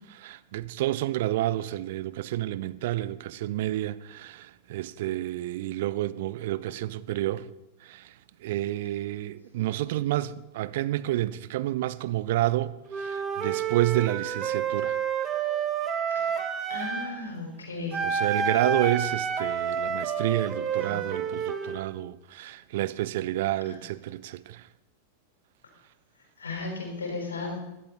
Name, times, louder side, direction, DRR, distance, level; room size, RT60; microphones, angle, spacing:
voice 1, 0.1-7.5 7.8-8.1 8.4-15.0 18.0-24.7, right 14 dB, 55° right, 0.5 m, -29 dB
Wind instrument woodwind instrument, 12.9-17.1 17.9-21.8, right 7 dB, 20° right, 1.7 m, -29 dB
voice 2, 16.7-18.0 20.7-21.0 26.4-27.6, left 3 dB, 70° left, 4.7 m, -35 dB
16.5 x 12.0 x 4.2 m
figure-of-eight pair, 90°, 0 cm